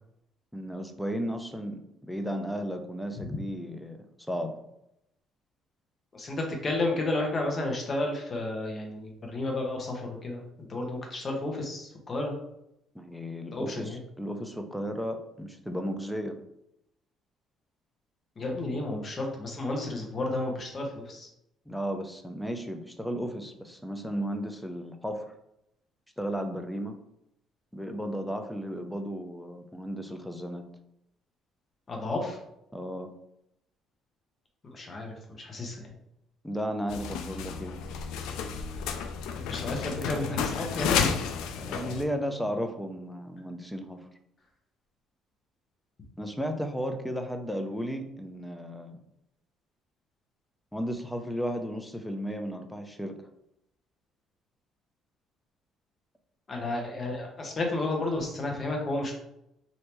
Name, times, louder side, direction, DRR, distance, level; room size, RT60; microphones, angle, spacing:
voice 1, 0.5-4.6 12.9-16.4 21.7-25.3 26.2-27.0 27.7-30.6 32.7-33.1 36.4-37.8 41.6-44.1 46.2-49.0 50.7-53.2, equal, 5° left, 5 dB, 0.4 m, -34 dB
voice 2, 6.1-10.4 10.7-12.3 13.5-14.0 18.4-21.3 31.9-32.4 34.6-35.9 39.5-41.1 56.5-59.1, left 2 dB, 35° left, 1 dB, 0.9 m, -32 dB
sound 1, 36.9-42.0, left 6 dB, 85° left, 0.3 m, -32 dB
3.2 x 2.7 x 3.0 m, 0.81 s
cardioid pair, 105°, 0 cm